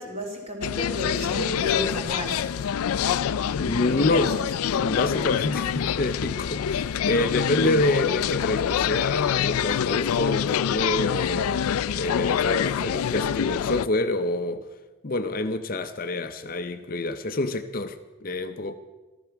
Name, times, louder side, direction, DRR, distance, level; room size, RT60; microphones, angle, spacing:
voice 1, 0.0-2.6 3.9-4.1 4.3-4.4, left 1 dB, 30° right, 1 dB, 3.2 m, -32 dB
sound 1, 0.6-13.9, left 8 dB, 90° left, 0.4 m, -26 dB
voice 2, 3.6-4.5 4.7-11.7 12.0-14.7 15.0-18.8, left 2 dB, 40° left, 8 dB, 0.6 m, -27 dB
14.0 x 14.0 x 5.8 m, 1.2 s
head